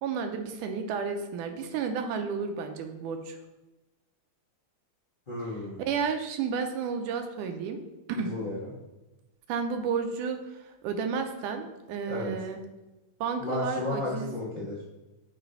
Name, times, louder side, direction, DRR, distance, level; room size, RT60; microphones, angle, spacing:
voice 1, 0.0-3.4 5.8-7.8 8.1-8.3 9.5-12.6 13.2-14.3, right 5 dB, 90° right, 6 dB, 2.2 m, -32 dB
voice 2, 5.3-5.8 8.1-8.7 12.0-12.3 13.4-14.8, left 2 dB, 45° left, -8 dB, 0.6 m, -33 dB
8.6 x 3.2 x 4.0 m, 1.0 s
omnidirectional pair, 3.5 m